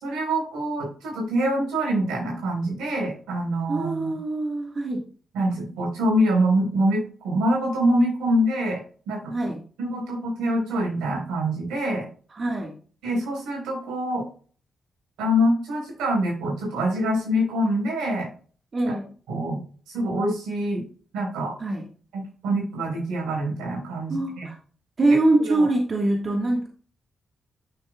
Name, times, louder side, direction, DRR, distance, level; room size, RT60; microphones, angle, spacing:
voice 1, 0.0-4.1 5.3-8.8 9.1-9.3 9.8-12.1 13.0-14.3 15.2-18.3 18.8-18.9 19.3-19.6 19.9-20.8 21.1-21.5 22.1-24.5 25.5-25.7, equal, 90° right, -2 dB, 4.1 m, -25 dB
voice 2, 3.7-5.0 9.3-9.6 12.3-12.7 18.7-19.0 21.6-21.8 24.1-24.6 25.0-26.7, right 2 dB, 50° right, 1 dB, 1.6 m, -23 dB
11.0 x 6.3 x 2.3 m, 0.42 s
supercardioid pair, 50°, 0 cm